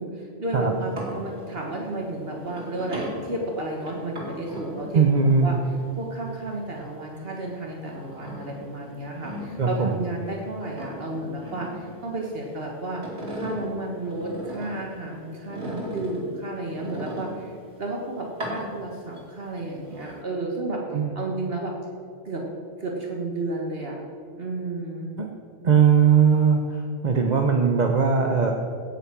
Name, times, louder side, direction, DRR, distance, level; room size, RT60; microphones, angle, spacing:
voice 1, 0.0-5.0 5.4-5.6 6.0-13.0 13.3-20.8 21.1-21.7 22.2-22.4 22.8-24.0 24.4-25.2, right 2 dB, 60° right, 0 dB, 1.6 m, -32 dB
sound 1, 0.7-7.1 7.5-10.4 10.7-12.5 12.8-15.0 15.5-17.7 18.3-19.2 19.6-20.2, equal, 80° right, 3.3 m, -38 dB
voice 2, 4.9-5.5 9.6-10.0 20.9-21.1 25.2-25.3 25.6-28.5, right 6 dB, 45° right, 2 dB, 0.9 m, -19 dB
17.0 x 7.0 x 6.1 m, 2.4 s
omnidirectional pair, 1.1 m